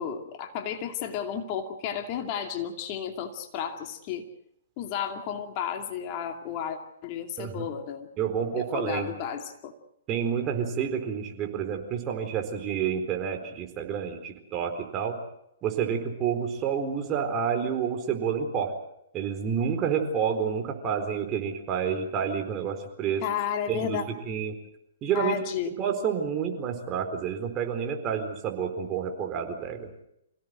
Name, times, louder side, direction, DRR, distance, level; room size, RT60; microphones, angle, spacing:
voice 1, 0.0-4.2 4.8-8.1 8.6-9.7 23.2-24.0 25.1-25.8, left 8 dB, 35° left, 5 dB, 2.5 m, -33 dB
voice 2, 8.2-9.1 10.1-15.2 15.6-18.7 19.1-23.2 23.7-24.6 25.0-25.4 25.7-29.9, right 7 dB, 25° right, 4 dB, 4.2 m, -29 dB
27.5 x 17.0 x 7.8 m, 0.80 s
figure-of-eight pair, 125°, 0 cm